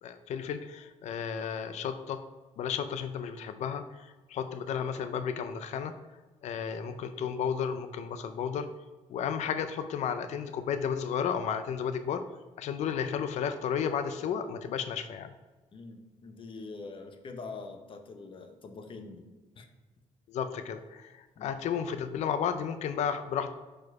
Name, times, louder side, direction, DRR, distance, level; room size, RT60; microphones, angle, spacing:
voice 1, 0.0-2.2 2.6-5.9 6.4-8.7 9.1-12.2 12.6-15.3 20.3-23.5, left 7 dB, 65° left, 10 dB, 0.4 m, -33 dB
voice 2, 15.7-19.3 19.6-19.7 21.4-21.5, left 4 dB, 45° left, 6 dB, 0.8 m, -44 dB
4.7 x 4.4 x 4.6 m, 1.2 s
cardioid pair, 110°, 13 cm